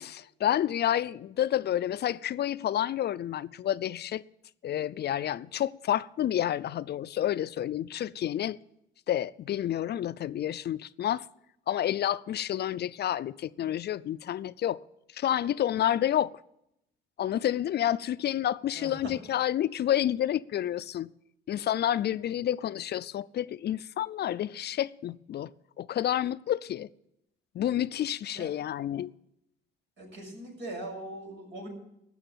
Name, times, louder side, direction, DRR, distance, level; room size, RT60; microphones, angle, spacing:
voice 1, 0.0-4.2 4.6-8.6 9.1-11.3 11.7-14.8 15.1-16.3 17.2-21.1 21.5-25.5 25.8-26.9 27.5-29.1, left 11 dB, 55° left, 0.4 m, -29 dB
voice 2, 18.7-19.1 28.3-28.5 30.0-31.7, right 1 dB, 70° right, 6.6 m, -40 dB
15.5 x 6.4 x 9.0 m
cardioid pair, 90°, 20 cm